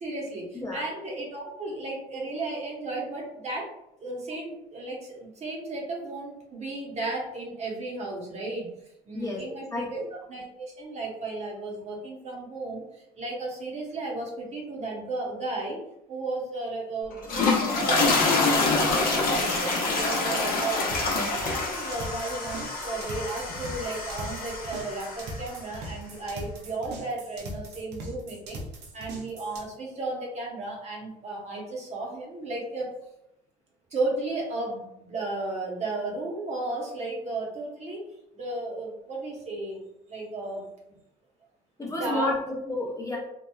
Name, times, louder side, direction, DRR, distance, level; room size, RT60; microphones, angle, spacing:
voice 1, 0.0-3.7 4.0-8.7 9.1-10.0 10.3-12.8 13.2-15.8 16.1-20.9 21.4-28.6 28.9-32.9 33.9-38.1 38.3-39.8 40.1-40.7 41.8-42.3, right 2 dB, 40° right, -2 dB, 0.8 m, -34 dB
sound 1, 17.1-25.5, left 3 dB, 60° left, 0.8 m, -26 dB
sound 2, 20.9-29.6, right 1 dB, 80° right, 0.6 m, -40 dB
voice 2, 41.8-43.2, left 2 dB, 20° left, -4 dB, 0.7 m, -31 dB
2.9 x 2.2 x 2.2 m, 0.83 s
cardioid pair, 110°, 17 cm